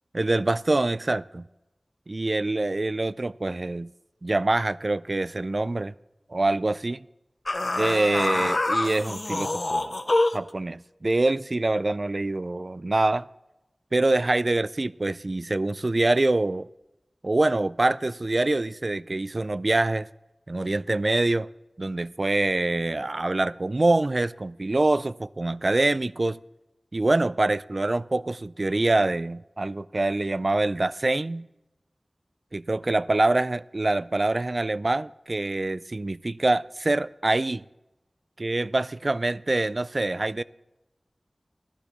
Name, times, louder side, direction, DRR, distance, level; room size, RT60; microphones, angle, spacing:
voice 1, 0.1-1.5 2.1-3.9 4.2-5.9 6.3-7.0 7.7-13.3 13.9-16.7 17.2-20.1 20.5-21.5 21.8-26.4 26.9-31.5 32.5-37.6 38.4-40.4, right 2 dB, 50° right, 0.3 m, -25 dB
sound 1, 7.5-10.5, left 2 dB, 60° left, 0.7 m, -26 dB
15.5 x 13.0 x 3.0 m
wide cardioid pair, 55°, 0 cm